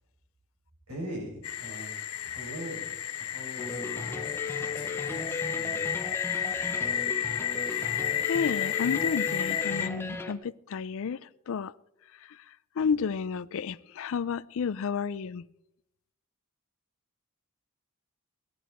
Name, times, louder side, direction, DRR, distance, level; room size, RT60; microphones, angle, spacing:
voice 1, 0.9-4.1 4.6-5.9, equal, 85° right, 6.9 m, -42 dB
sound 1, 1.4-9.9, left 10 dB, 80° left, 0.8 m, -32 dB
sound 2, 3.6-10.3, left 2 dB, 10° left, 0.8 m, -36 dB
voice 2, 8.1-11.7 12.3-12.4 12.8-15.5, left 6 dB, 60° left, 0.4 m, -31 dB
18.5 x 11.0 x 4.3 m
head